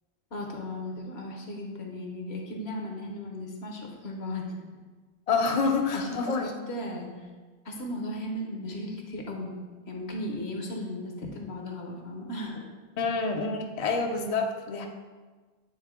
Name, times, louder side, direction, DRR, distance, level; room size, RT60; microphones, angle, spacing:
voice 1, 0.3-4.8 5.9-7.3 7.6-9.6 9.9-12.7, left 1 dB, 70° left, 1 dB, 1.2 m, -36 dB
voice 2, 5.3-6.5 13.0-14.9, left 4 dB, 45° left, 3 dB, 0.5 m, -27 dB
8.3 x 3.7 x 3.6 m, 1.4 s
omnidirectional pair, 1.2 m